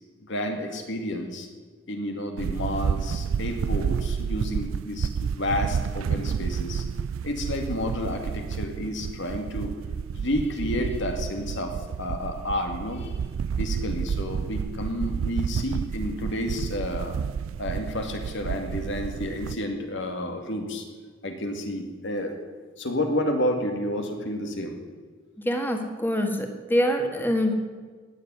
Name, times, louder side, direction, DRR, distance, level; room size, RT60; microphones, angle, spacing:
voice 1, 0.2-1.5 1.9-6.9 7.2-9.8 10.1-17.2 17.6-20.9 21.2-22.4 22.8-24.8, left 1 dB, 65° left, 5 dB, 2.3 m, -30 dB
sound 1, 2.4-19.6, right 6 dB, 85° right, 0.3 m, -30 dB
voice 2, 25.5-27.5, equal, 10° left, 4 dB, 1.9 m, -25 dB
18.5 x 7.6 x 9.5 m, 1.5 s
head